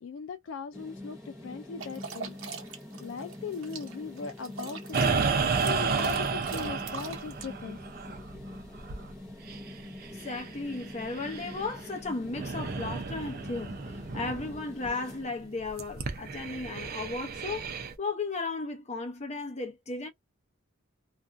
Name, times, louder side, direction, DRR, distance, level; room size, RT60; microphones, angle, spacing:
voice 1, 0.0-2.4 2.7-7.8, left 6 dB, 60° left, 0.3 m, -39 dB
sound 1, 0.7-16.1, left 1 dB, 5° left, 1.1 m, -45 dB
sound 2, 1.8-7.5, right 5 dB, 70° right, 0.9 m, -41 dB
sound 3, 4.9-11.9 12.2-14.6 14.9-15.0 15.6-18.0, right 5 dB, 45° right, 0.5 m, -32 dB
voice 2, 10.2-13.8 14.1-17.7 18.0-20.1, left 3 dB, 30° left, 0.6 m, -35 dB
2.5 x 2.2 x 2.5 m
head